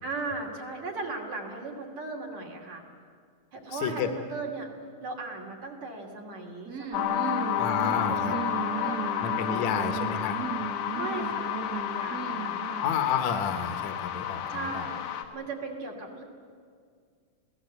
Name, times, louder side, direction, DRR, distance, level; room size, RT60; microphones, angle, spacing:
voice 1, 0.0-2.8 3.5-4.7 5.0-9.9 11.0-12.8 14.5-15.0 15.3-16.2, right 3 dB, 65° right, 0 dB, 3.9 m, -38 dB
voice 2, 3.7-4.1 7.6-8.3 9.2-10.4 12.8-14.9, left 8 dB, 70° left, 7 dB, 2.5 m, -30 dB
sound 1, 6.6-13.1, right 6 dB, 50° right, 1.2 m, -36 dB
sound 2, 6.9-15.2, left 10 dB, 85° left, 2.9 m, -31 dB
27.0 x 17.5 x 8.1 m, 2.1 s
omnidirectional pair, 3.5 m